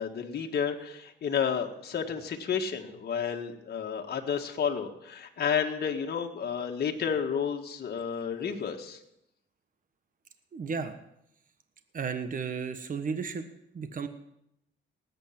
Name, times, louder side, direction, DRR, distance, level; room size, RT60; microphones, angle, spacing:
voice 1, 0.0-9.0, left 7 dB, 55° left, 2 dB, 1.8 m, -31 dB
voice 2, 10.5-11.0 11.9-13.4 13.7-14.1, right 5 dB, 45° right, 8 dB, 1.3 m, -33 dB
19.0 x 8.4 x 6.0 m, 0.80 s
cardioid pair, 90°, 20 cm